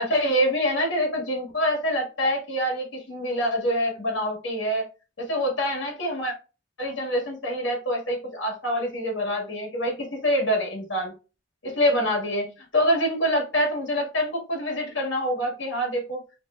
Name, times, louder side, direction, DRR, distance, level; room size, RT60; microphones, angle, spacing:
voice 1, 0.0-4.8 5.2-6.3 6.8-11.1 11.6-16.2, equal, 75° left, 0 dB, 1.7 m, -25 dB
5.0 x 2.7 x 2.3 m, 0.32 s
head